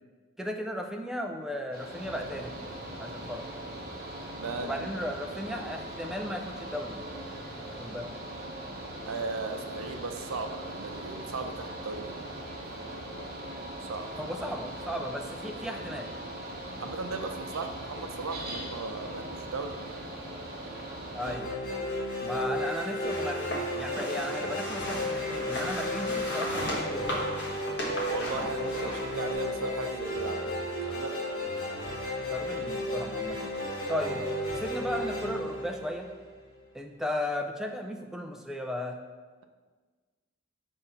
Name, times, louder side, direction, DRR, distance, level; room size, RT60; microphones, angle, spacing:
voice 1, 0.4-2.7 3.0-3.5 4.6-7.1 7.8-8.1 14.2-16.1 21.1-21.5 22.2-27.3 32.3-33.5 33.9-34.2 34.5-36.1 36.7-39.0, left 1 dB, ahead, 3 dB, 0.3 m, -35 dB
Mechanical fan, 1.7-21.4, right 1 dB, 45° right, 1.0 m, -40 dB
voice 2, 4.4-4.9 9.1-12.1 13.8-14.1 16.8-19.8 22.5-22.6 28.1-30.5 30.8-31.1 33.8-34.1, right 4 dB, 85° right, 6 dB, 0.5 m, -37 dB
sound 1, 21.2-36.5, left 1 dB, 90° left, 1.5 m, -33 dB
sound 2, 22.1-29.3, left 1 dB, 55° left, 1.2 m, -37 dB
5.4 x 3.5 x 5.6 m, 1.4 s
head